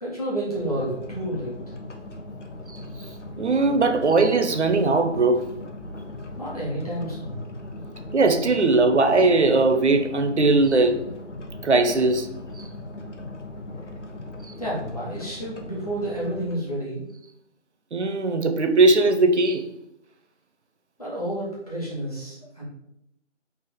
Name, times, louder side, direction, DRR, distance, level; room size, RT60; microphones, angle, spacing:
voice 1, 0.0-1.5 6.4-7.4 14.6-17.1 21.0-22.6, right 1 dB, 30° left, 1.1 m, -30 dB
sound 1, 0.6-16.6, left 1 dB, 75° left, 0.7 m, -39 dB
voice 2, 3.4-5.5 8.1-11.1 11.6-12.3 17.9-19.7, right 3 dB, 65° right, 0.5 m, -19 dB
3.4 x 2.4 x 3.6 m
figure-of-eight pair, 175°, 37 cm